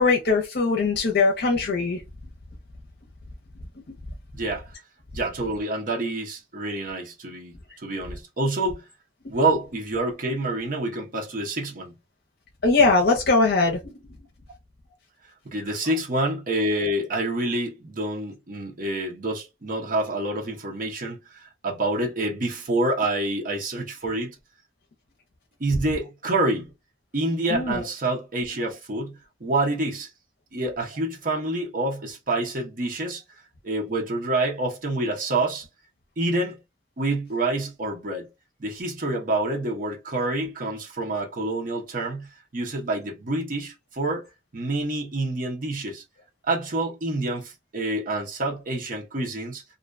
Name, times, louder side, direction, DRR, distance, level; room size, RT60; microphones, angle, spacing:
voice 1, 0.0-2.0 12.6-13.8 27.5-27.8, left 3 dB, 60° left, 0.6 m, -20 dB
voice 2, 4.3-4.7 5.1-8.9 9.3-11.9 15.4-24.4 25.6-26.7 27.1-30.1 30.5-33.2 33.6-35.7 36.2-36.6 37.0-38.3 38.6-44.3 44.5-46.0 46.5-49.6, right 2 dB, 50° right, 0.7 m, -27 dB
2.5 x 2.2 x 2.4 m
head